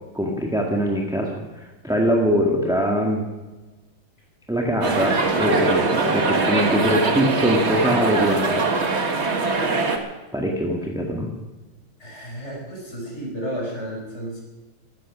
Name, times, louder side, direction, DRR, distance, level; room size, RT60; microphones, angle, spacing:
voice 1, 0.1-1.4 1.8-3.2 4.5-8.7 10.3-11.3, equal, ahead, 0 dB, 1.6 m, -22 dB
sound 1, 4.8-10.0, right 3 dB, 35° right, 1.6 m, -22 dB
voice 2, 12.0-14.4, equal, 30° left, -1 dB, 5.4 m, -32 dB
14.5 x 14.5 x 6.2 m, 1.2 s
omnidirectional pair, 2.3 m